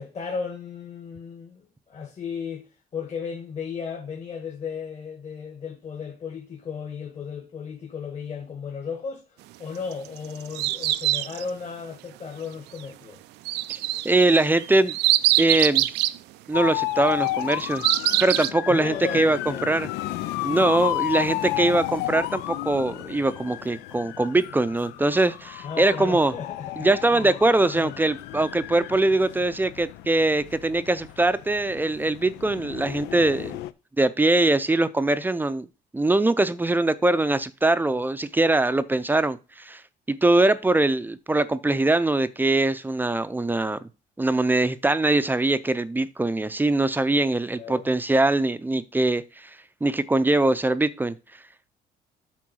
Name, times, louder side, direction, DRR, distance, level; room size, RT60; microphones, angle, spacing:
voice 1, 0.0-2.7 2.9-13.2 18.7-19.8 25.6-28.0 47.5-47.9, left 6 dB, 40° left, 2.0 m, -35 dB
sound 1, 9.9-11.5 13.4-16.2 17.3-18.5, right 16 dB, 80° right, 0.5 m, -23 dB
voice 2, 14.0-15.0 15.4-15.9 16.5-17.8 18.2-19.9 20.4-26.3 26.8-33.6 34.0-35.7 35.9-39.8 40.1-43.8 44.2-49.5 49.8-51.1, right 2 dB, 10° right, 0.6 m, -22 dB
sound 2, 16.5-33.7, left 15 dB, 90° left, 0.5 m, -32 dB
8.5 x 3.8 x 6.3 m
cardioid pair, 110°, 17 cm